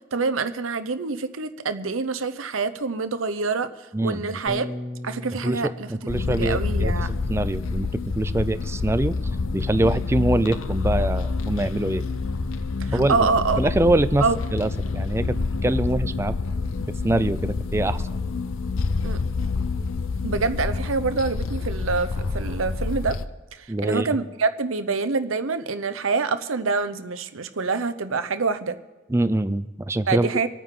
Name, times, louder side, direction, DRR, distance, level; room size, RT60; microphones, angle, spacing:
voice 1, 0.1-4.7 5.0-5.9 6.2-7.1 12.8-13.6 14.2-14.4 19.0-19.2 20.2-23.2 23.5-28.8 30.1-30.5, right 4 dB, 80° right, 11 dB, 0.8 m, -26 dB
voice 2, 3.9-4.4 5.4-5.6 5.9-7.9 8.1-9.1 9.5-12.0 12.9-13.2 13.6-14.2 14.5-16.3 17.0-18.0 23.7-24.1 29.1-30.3, right 1 dB, 10° right, 13 dB, 0.3 m, -24 dB
Bass guitar, 4.5-10.7, left 1 dB, 30° left, 2.8 m, -41 dB
sound 1, 6.1-23.2, left 4 dB, 80° left, 0.6 m, -27 dB
25.5 x 9.3 x 3.8 m, 1.2 s
head